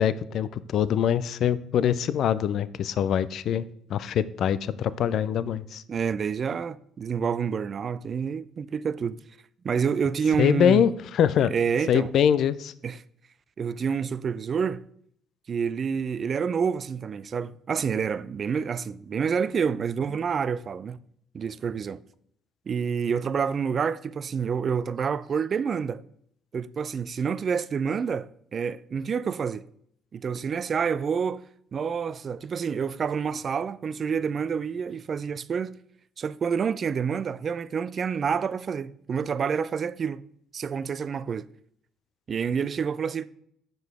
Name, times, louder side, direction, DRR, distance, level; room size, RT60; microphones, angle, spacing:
voice 1, 0.0-3.6 3.9-5.8 10.4-11.5 11.9-12.7, left 9 dB, 60° left, 0.4 m, -23 dB
voice 2, 5.9-9.3 9.6-10.8 11.4-12.1 12.8-13.0 13.6-14.8 15.5-21.0 21.3-22.0 22.7-26.0 26.5-29.6 30.1-31.4 31.7-35.8 36.2-40.2 40.5-41.5 42.3-43.3, right 6 dB, 45° right, 0.4 m, -28 dB
7.5 x 5.3 x 4.7 m
hypercardioid pair, 50°, 0 cm